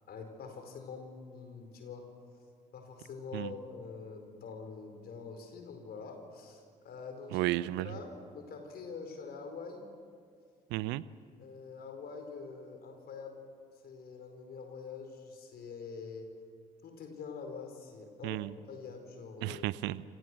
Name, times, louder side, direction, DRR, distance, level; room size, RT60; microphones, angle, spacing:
voice 1, 0.1-2.1 2.7-7.5 7.8-9.8 11.4-13.4 13.8-16.3 16.8-19.6, left 5 dB, 50° left, 5 dB, 4.8 m, -45 dB
voice 2, 7.3-8.0 10.7-11.0 18.2-18.5 19.4-20.0, right 17 dB, 60° right, 19 dB, 0.8 m, -33 dB
28.5 x 27.0 x 6.3 m, 2.2 s
figure-of-eight pair, 45°, 20 cm